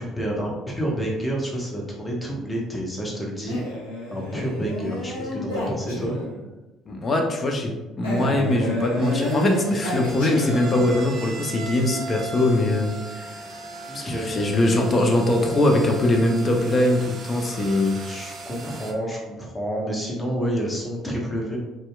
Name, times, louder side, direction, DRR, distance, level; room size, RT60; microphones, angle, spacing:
voice 1, 0.0-3.6 4.1-6.2 13.9-14.3 17.4-17.7 18.0-21.6, equal, 15° left, -2 dB, 0.8 m, -29 dB
Male speech man speaking, 3.5-6.5 8.0-11.0, left 1 dB, 90° left, 0.5 m, -29 dB
voice 2, 6.9-13.3 13.9-18.0, left 1 dB, 40° left, 2 dB, 0.4 m, -22 dB
sound 1, 8.7-18.9, right 2 dB, 55° right, 0.3 m, -38 dB
2.7 x 2.1 x 2.2 m, 1.1 s
hypercardioid pair, 55°, 0 cm